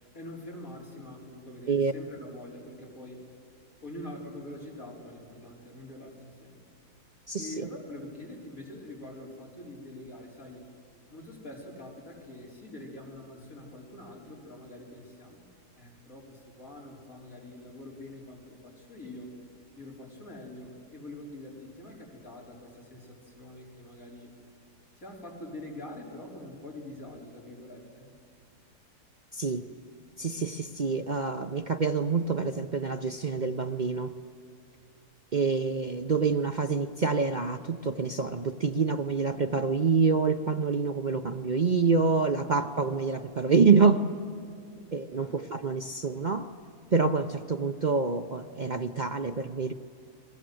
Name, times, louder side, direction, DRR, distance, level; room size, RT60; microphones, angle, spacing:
voice 1, 0.1-3.2 3.8-6.6 7.4-10.7 11.1-15.5 15.8-19.3 19.8-24.3 25.0-28.1 45.1-45.4, left 1 dB, 55° left, -2 dB, 4.9 m, -44 dB
voice 2, 7.3-7.7 29.3-29.6 30.2-34.1 35.3-44.1 44.9-46.5 46.9-49.7, right 4 dB, 50° right, 6 dB, 0.5 m, -26 dB
29.5 x 21.0 x 7.8 m, 2.5 s
omnidirectional pair, 1.7 m